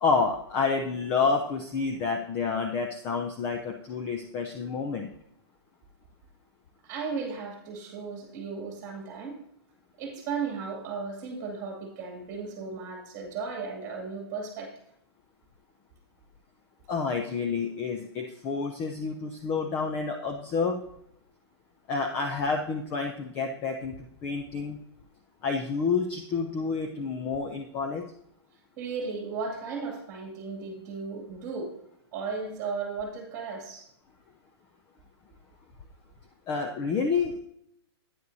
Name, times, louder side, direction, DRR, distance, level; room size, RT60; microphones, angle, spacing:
voice 1, 0.0-5.1 16.9-20.8 21.9-24.8 25.4-28.0 36.5-37.4, left 4 dB, 15° left, 4 dB, 0.4 m, -29 dB
voice 2, 6.8-9.3 10.0-14.7 28.8-31.7 32.1-33.9, right 5 dB, 20° right, 1 dB, 2.3 m, -35 dB
9.6 x 9.3 x 2.7 m, 0.72 s
hypercardioid pair, 170°, 14 cm